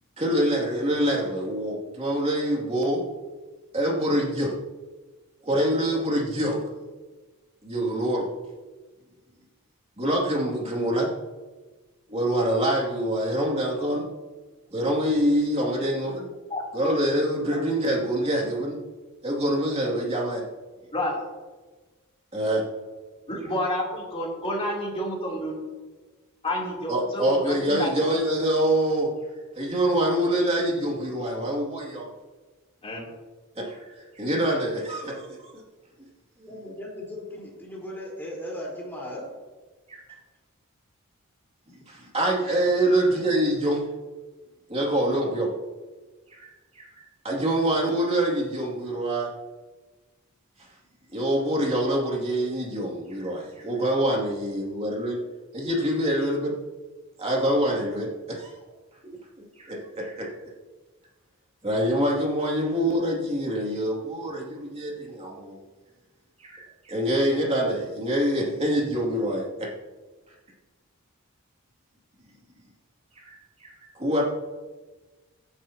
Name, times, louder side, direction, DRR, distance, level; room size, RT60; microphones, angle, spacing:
voice 1, 0.2-3.1 3.7-4.5 5.4-6.6 7.6-8.3 10.0-11.1 12.1-14.1 14.7-16.2 16.7-18.9 19.2-20.5 22.3-22.7 26.9-29.1 29.6-32.1 33.6-33.8 34.2-35.6 36.4-36.5 39.9-40.0 41.9-43.9 44.7-45.5 46.3-46.9 47.2-49.3 51.1-55.2 55.5-56.6 57.2-58.5 59.0-59.2 59.6-60.3 61.6-65.6 66.4-69.7 73.2-74.2, right 1 dB, 30° right, -2 dB, 2.5 m, -25 dB
voice 2, 23.3-25.6 26.4-28.2 32.8-33.1, left 1 dB, 25° left, -3 dB, 3.2 m, -29 dB
voice 3, 36.5-39.3 40.1-40.2 42.7-42.9, left 1 dB, 10° left, -5 dB, 4.2 m, -37 dB
16.5 x 10.5 x 2.9 m, 1.3 s
head